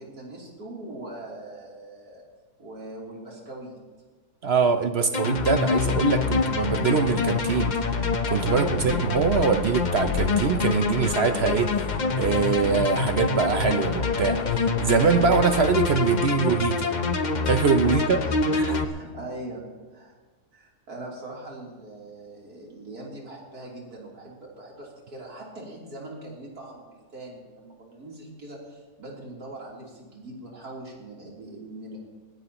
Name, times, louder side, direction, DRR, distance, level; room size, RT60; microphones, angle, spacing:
voice 1, 0.0-2.2 2.6-3.7 8.5-8.9 17.8-18.0 18.3-19.6 19.9-20.1 20.5-32.0, right 2 dB, 85° right, -3 dB, 3.7 m, -41 dB
voice 2, 4.4-7.8 8.3-11.7 12.2-14.4 14.8-16.9 17.5-18.2 18.5-18.7, right 5 dB, 55° right, 9 dB, 0.8 m, -23 dB
sound 1, 5.1-18.8, left 4 dB, 40° left, 0.8 m, -26 dB
20.0 x 16.5 x 3.0 m, 1.4 s
omnidirectional pair, 1.6 m